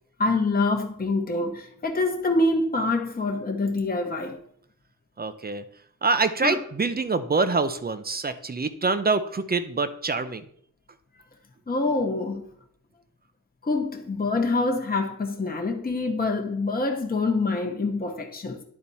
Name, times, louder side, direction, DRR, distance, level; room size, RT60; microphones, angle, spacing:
voice 1, 0.2-4.4 6.4-6.6 11.7-12.5 13.6-18.6, left 2 dB, 30° left, 1.0 m, -25 dB
voice 2, 5.2-5.6 6.0-10.4, right 4 dB, 30° right, 0.6 m, -25 dB
10.5 x 4.3 x 4.1 m
wide cardioid pair, 90°, 32 cm